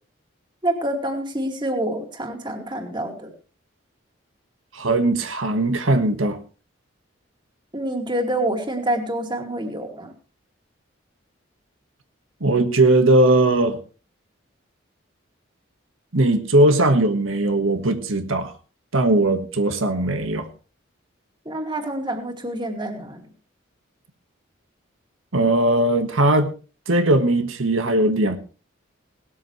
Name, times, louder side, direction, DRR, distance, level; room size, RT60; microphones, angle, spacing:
voice 1, 0.6-3.3 7.7-10.1 21.4-23.2, right 1 dB, 25° right, 4 dB, 2.5 m, -27 dB
voice 2, 4.7-6.4 12.4-13.8 16.1-18.5 18.9-20.5 25.3-26.5 26.9-28.4, right 2 dB, 85° right, 7 dB, 1.6 m, -19 dB
18.5 x 13.0 x 3.2 m, 0.34 s
head